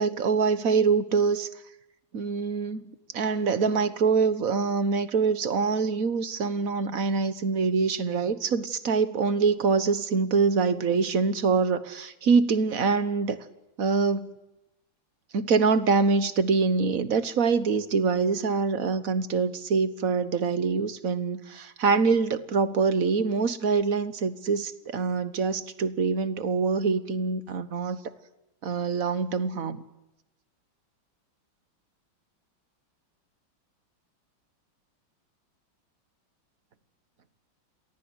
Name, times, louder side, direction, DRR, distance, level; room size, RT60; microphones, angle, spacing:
voice 1, 0.0-1.5 2.1-13.4 13.8-14.3 15.3-28.0 28.6-29.8, right 4 dB, 50° right, 12 dB, 1.5 m, -25 dB
29.5 x 23.0 x 8.0 m, 0.96 s
omnidirectional pair, 2.1 m